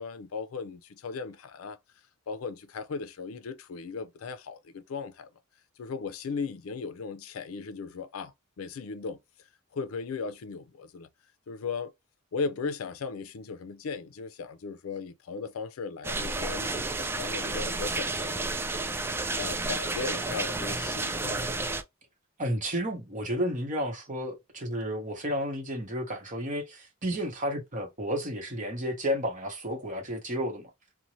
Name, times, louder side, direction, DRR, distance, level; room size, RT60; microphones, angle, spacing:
voice 1, 0.0-1.8 2.3-5.3 5.8-9.2 9.7-11.1 11.5-11.9 12.3-18.4 19.3-21.5, left 4 dB, 80° left, 0.4 m, -37 dB
sound 1, 16.0-21.8, right 3 dB, 10° right, 0.3 m, -31 dB
voice 2, 22.4-30.7, equal, 40° right, 1.0 m, -32 dB
2.6 x 2.2 x 2.9 m
head